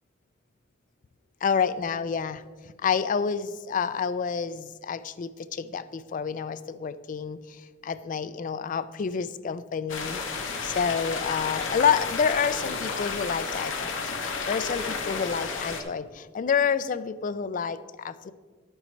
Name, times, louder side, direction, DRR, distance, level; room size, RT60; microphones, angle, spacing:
voice 1, 1.4-2.4 2.8-10.2 10.6-18.3, left 6 dB, 45° left, 13 dB, 0.3 m, -28 dB
sound 1, 9.9-15.8, left 4 dB, 75° left, 1.0 m, -32 dB
10.0 x 8.9 x 3.2 m, 1.5 s
head